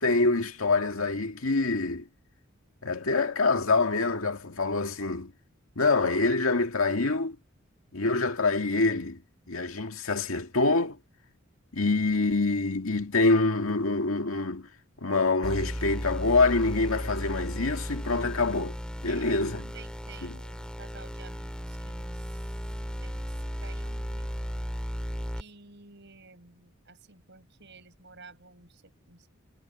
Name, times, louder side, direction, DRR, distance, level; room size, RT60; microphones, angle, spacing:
voice 1, 0.0-2.1 2.8-5.3 5.8-7.4 7.9-9.2 9.5-11.0 11.7-14.7 15.0-18.8 19.0-19.6 20.2-20.3, left 3 dB, 85° left, 2.0 m, -25 dB
sound 1, 15.4-25.4, equal, 5° left, 3.1 m, -35 dB
voice 2, 19.1-22.5 23.0-24.3 25.3-29.4, right 4 dB, 60° right, 6.1 m, -52 dB
head